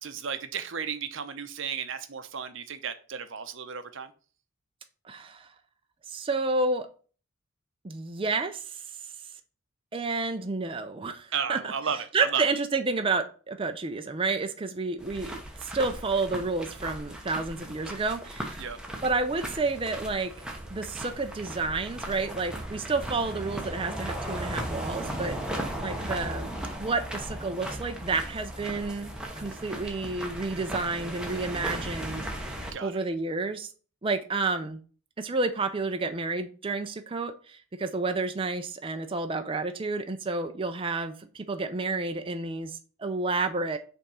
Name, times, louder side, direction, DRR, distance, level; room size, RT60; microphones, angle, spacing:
voice 1, 0.0-4.1 11.3-12.0 12.3-12.4 18.6-18.8 32.7-33.0, right 7 dB, 60° right, 0.7 m, -33 dB
voice 2, 5.1-5.5 6.1-6.9 7.8-8.8 9.9-11.6 12.1-18.6 19.0-20.3 20.7-26.4 26.8-29.1 29.4-33.7 34.0-34.8 35.2-43.8, right 3 dB, 25° right, 0.5 m, -30 dB
sound 1, 15.0-32.7, right 1 dB, 5° right, 0.9 m, -37 dB
5.6 x 3.5 x 5.5 m
head